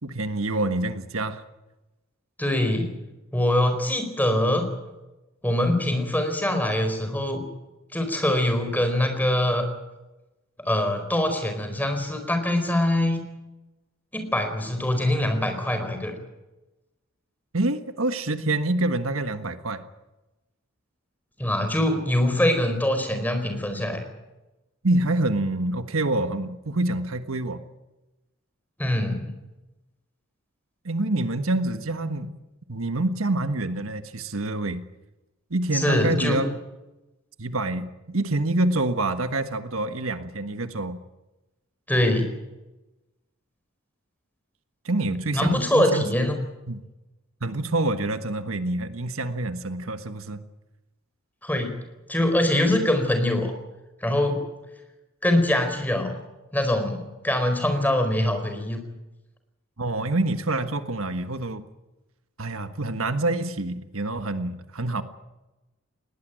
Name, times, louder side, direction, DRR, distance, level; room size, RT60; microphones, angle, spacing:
voice 1, 0.0-1.4 17.5-19.8 24.8-27.6 30.8-32.3 32.7-34.9 35.5-36.5 37.4-41.0 44.8-46.0 46.7-46.8 47.4-50.4 59.8-61.6 62.4-65.0, right 2 dB, 80° right, 10 dB, 1.5 m, -26 dB
voice 2, 2.4-3.0 3.3-4.7 5.4-7.4 7.9-9.7 10.6-13.2 14.1-16.1 21.4-24.0 28.8-29.3 35.7-36.4 41.9-42.3 45.3-46.4 51.4-51.7 52.1-53.5 54.0-54.4 55.2-56.1 56.5-58.8, left 1 dB, 10° left, 6 dB, 4.6 m, -23 dB
20.5 x 18.5 x 9.2 m, 1.0 s
head